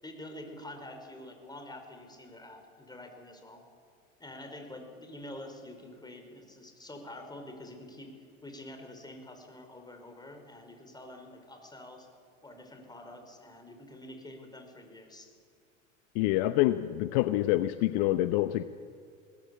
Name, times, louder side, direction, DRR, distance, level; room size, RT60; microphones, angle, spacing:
voice 1, 0.0-3.6 4.2-8.1 8.4-12.1 12.4-15.3, left 1 dB, 10° left, 4 dB, 5.1 m, -47 dB
voice 2, 16.1-18.6, left 15 dB, 55° left, 11 dB, 0.9 m, -26 dB
22.0 x 19.0 x 8.5 m, 2.3 s
hypercardioid pair, 80°, 38 cm